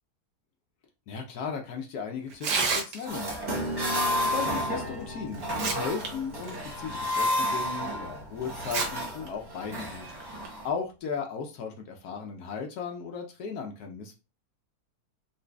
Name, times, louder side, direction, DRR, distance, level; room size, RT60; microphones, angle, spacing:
voice 1, 1.1-3.3 4.0-10.3 10.6-14.1, left 6 dB, 75° left, 2 dB, 1.2 m, -36 dB
Tearing, 2.3-3.3 4.8-4.9 5.3-6.1 6.4-6.6 7.2-7.3 8.6-8.9 9.3-9.4 10.2-10.5, right 4 dB, 80° right, 1.4 m, -29 dB
sound 1, 3.1-10.7, left 1 dB, 25° right, 0.5 m, -31 dB
Piano, 3.5-9.7, equal, 50° right, 1.3 m, -40 dB
4.0 x 2.9 x 2.2 m, 0.29 s
omnidirectional pair, 1.7 m